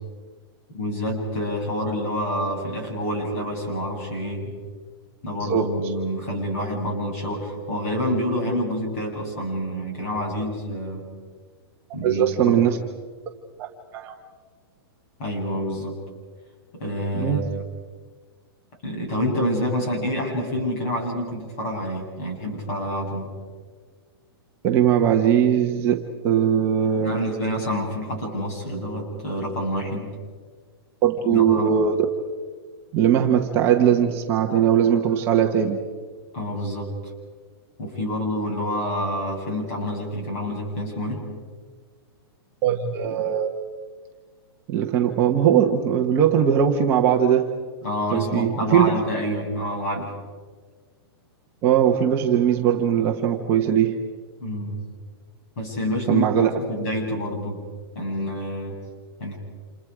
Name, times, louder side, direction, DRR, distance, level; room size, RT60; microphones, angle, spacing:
voice 1, 0.7-4.5 5.2-11.1 11.9-12.6 15.2-16.0 16.7-17.6 18.8-23.3 27.0-30.1 31.2-31.7 36.3-36.9 37.8-41.2 47.8-50.1 54.4-54.8 55.6-57.6 57.9-58.7 59.2-59.4, equal, 35° left, 0 dB, 7.7 m, -27 dB
voice 2, 5.4-5.7 12.0-12.8 13.6-14.1 17.1-17.5 24.6-27.2 31.0-32.0 32.9-35.8 42.6-43.5 44.7-47.5 48.1-48.9 51.6-54.0 56.1-56.5, right 9 dB, 20° right, 1 dB, 1.0 m, -20 dB
30.0 x 28.0 x 4.9 m, 1.5 s
hypercardioid pair, 180°, 13 cm